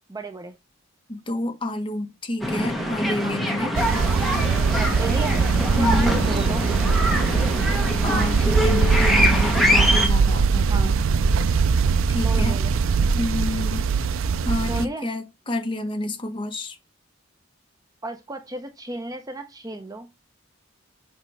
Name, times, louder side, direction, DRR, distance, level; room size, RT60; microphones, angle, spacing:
voice 1, 0.1-0.6 3.2-3.4 5.0-6.7 10.7-10.9 12.2-12.7 14.6-15.1 18.0-20.1, right 2 dB, 15° right, 0.7 m, -34 dB
voice 2, 1.1-3.7 5.7-6.2 8.0-11.0 12.1-12.6 13.1-13.8 14.4-16.8, left 1 dB, 25° left, 1.3 m, -29 dB
sound 1, 2.4-10.1, equal, ahead, 1.5 m, -24 dB
sound 2, 3.7-14.8, right 5 dB, 70° right, 0.4 m, -21 dB
7.5 x 5.2 x 3.3 m
head